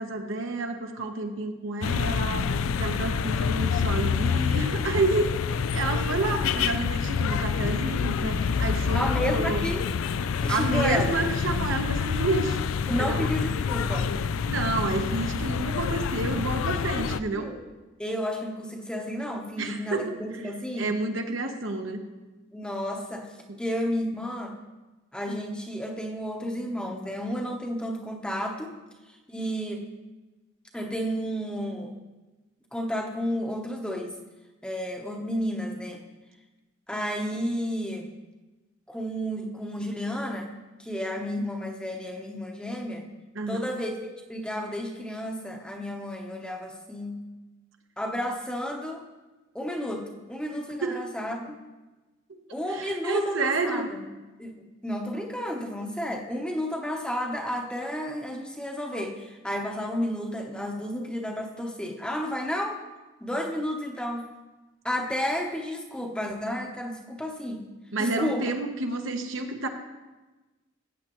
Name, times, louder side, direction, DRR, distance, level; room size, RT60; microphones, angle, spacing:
voice 1, 0.0-9.7 10.5-12.6 13.0-13.3 14.5-17.5 19.6-20.1 20.8-22.0 43.3-43.7 50.8-51.0 52.7-53.9 67.9-69.7, right 2 dB, 70° right, 4 dB, 1.0 m, -29 dB
sound 1, 1.8-17.2, left 6 dB, 85° left, 0.4 m, -27 dB
voice 2, 8.9-9.9 10.4-11.1 12.9-14.2 16.9-17.6 18.0-20.9 22.5-23.3 23.6-24.6 25.1-28.7 29.3-29.9 30.7-31.9 32.7-34.1 34.6-36.0 36.9-38.1 38.9-40.5 40.8-43.0 43.5-47.3 48.0-49.1 49.5-51.6 52.5-54.0 54.4-62.8 63.2-64.3 64.8-67.6 68.0-68.5, equal, 5° left, 1 dB, 0.8 m, -32 dB
14.5 x 8.4 x 3.0 m, 1.2 s
head